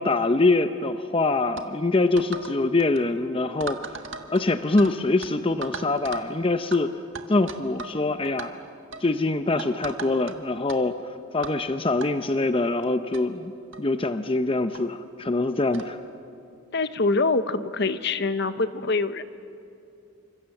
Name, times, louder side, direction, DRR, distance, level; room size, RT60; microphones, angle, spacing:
voice 1, 0.0-3.8 4.3-6.9 7.3-8.6 9.0-11.0 11.3-13.5 13.8-16.0, left 2 dB, 25° left, 9 dB, 0.6 m, -24 dB
sound 1, 1.6-1.7 2.2-2.5 2.8-3.0 3.6-4.9 5.2-5.3 5.6-6.3 6.7-6.8 7.2-8.0 8.2-8.5 8.9-9.1 9.6-10.3 10.7-10.8 11.4-11.6 12.0-12.1 12.8-12.9 13.1-13.2 13.7-13.9 14.7-14.8 15.7-15.9, right 4 dB, 65° right, 1.6 m, -37 dB
voice 2, 16.7-19.2, left 3 dB, 55° left, 12 dB, 1.0 m, -24 dB
28.5 x 26.0 x 7.8 m, 2.6 s
head